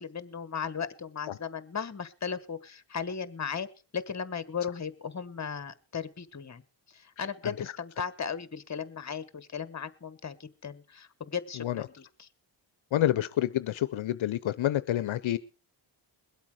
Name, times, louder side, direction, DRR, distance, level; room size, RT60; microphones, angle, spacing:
voice 1, 0.0-3.7 3.9-6.6 6.9-12.3, left 6 dB, 35° left, 14 dB, 1.2 m, -36 dB
voice 2, 12.9-15.4, left 12 dB, 75° left, 14 dB, 0.6 m, -28 dB
21.5 x 8.2 x 4.8 m, 0.35 s
cardioid pair, 85°, 48 cm